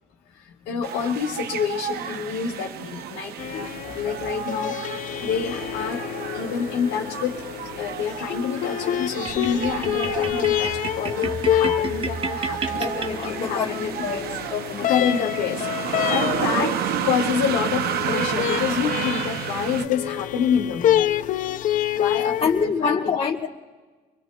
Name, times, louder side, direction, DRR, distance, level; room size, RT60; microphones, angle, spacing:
voice 1, 0.3-6.0 6.3-7.4 7.8-13.9 14.9-21.1 21.9-23.0, left 7 dB, 90° left, 1.5 m, -27 dB
sound 1, 0.8-19.9, right 9 dB, 65° right, 0.8 m, -31 dB
sound 2, 3.4-22.7, left 12 dB, 50° left, 0.4 m, -28 dB
sound 3, 9.2-13.7, right 4 dB, 35° right, 0.7 m, -32 dB
voice 2, 12.7-15.1 21.0-21.1 22.4-23.5, left 5 dB, 35° left, 1.3 m, -27 dB
26.0 x 22.5 x 2.3 m
cardioid pair, 110°, 17 cm